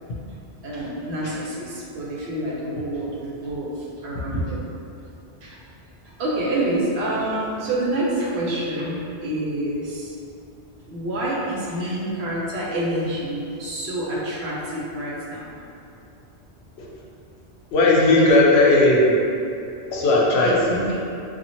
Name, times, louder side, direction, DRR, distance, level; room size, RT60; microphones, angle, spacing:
voice 1, 0.6-4.6 5.4-5.6 6.0-10.2 10.9-15.6 17.9-18.3 20.3-21.0, right 1 dB, 75° right, -6 dB, 0.9 m, -27 dB
voice 2, 17.7-19.0 19.9-20.7, left 2 dB, 75° left, -3 dB, 0.8 m, -16 dB
2.7 x 2.4 x 2.8 m, 2.6 s
omnidirectional pair, 1.1 m